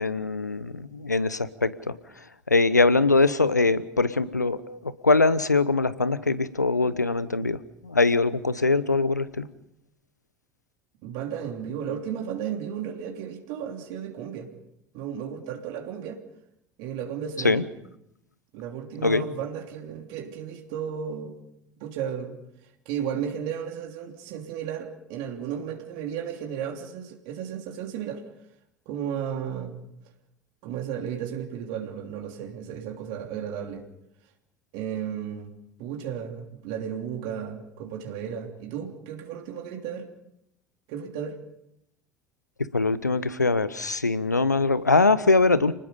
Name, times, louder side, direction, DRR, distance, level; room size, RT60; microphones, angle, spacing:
voice 1, 0.0-1.9 2.5-7.6 7.8-9.5 17.4-17.6 19.0-19.2 42.7-45.7, left 3 dB, 90° left, 16 dB, 0.9 m, -22 dB
voice 2, 11.0-14.5 14.9-16.2 16.8-17.6 18.5-21.4 21.8-22.4 22.8-28.2 28.9-29.8 30.6-33.8 34.7-35.5 35.8-40.1 40.9-41.4, right 8 dB, 60° right, 2 dB, 3.2 m, -34 dB
30.0 x 20.0 x 5.4 m, 0.83 s
figure-of-eight pair, 70°, 9 cm